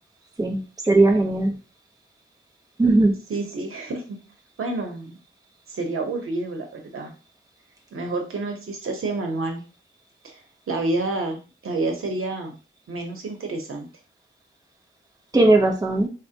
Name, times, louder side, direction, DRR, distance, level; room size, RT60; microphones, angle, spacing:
voice 1, 0.4-1.5 2.8-3.2 15.3-16.1, right 2 dB, 15° right, 1 dB, 0.6 m, -18 dB
voice 2, 3.3-4.2 4.6-5.2 5.7-7.1 7.9-9.6 10.2-10.4 10.7-12.6 12.9-13.9, right 2 dB, 90° right, 3 dB, 0.8 m, -29 dB
4.1 x 2.2 x 2.7 m, 0.33 s
wide cardioid pair, 145°, 21 cm